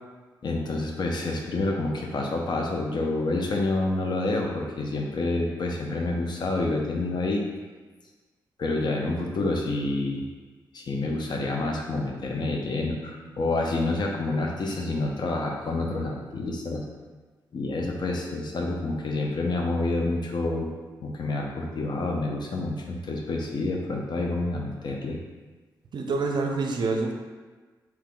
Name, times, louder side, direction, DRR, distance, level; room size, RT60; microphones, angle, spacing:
voice 1, 0.4-7.4 8.6-10.2 10.7-16.9 17.5-20.7 21.0-25.2, left 2 dB, 55° left, 0 dB, 0.6 m, -28 dB
voice 2, 25.9-27.1, right 3 dB, 60° right, 2 dB, 0.5 m, -26 dB
3.5 x 3.0 x 2.3 m, 1.3 s
supercardioid pair, 45°, 9 cm